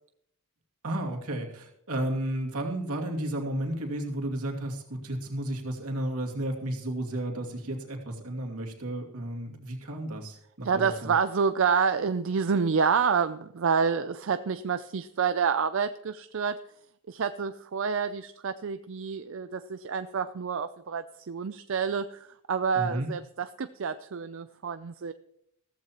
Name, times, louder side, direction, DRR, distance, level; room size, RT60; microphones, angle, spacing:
voice 1, 0.8-11.1 22.7-23.1, right 1 dB, 80° right, 1 dB, 2.5 m, -33 dB
voice 2, 10.6-16.6 17.1-25.1, right 6 dB, 60° right, 11 dB, 0.5 m, -28 dB
15.0 x 14.5 x 3.0 m, 0.74 s
head